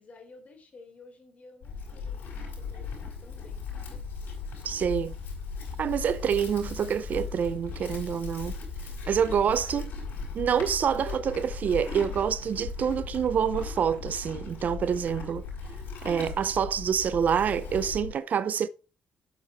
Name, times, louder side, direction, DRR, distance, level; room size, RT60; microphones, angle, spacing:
voice 1, 0.0-4.1 9.2-10.0, left 3 dB, 45° left, 3.7 m, -53 dB
Livestock farm animals working animals, 1.6-18.1, left 5 dB, 70° left, 4.9 m, -38 dB
voice 2, 4.6-5.1 5.8-8.6 9.1-9.9 10.3-15.5 16.0-18.7, right 7 dB, 60° right, 0.6 m, -27 dB
sound 1, 7.6-13.7, left 2 dB, 20° left, 4.6 m, -49 dB
Bowed string instrument, 11.0-14.1, right 8 dB, 75° right, 3.5 m, -53 dB
7.9 x 7.3 x 4.5 m
supercardioid pair, 65°, 3 cm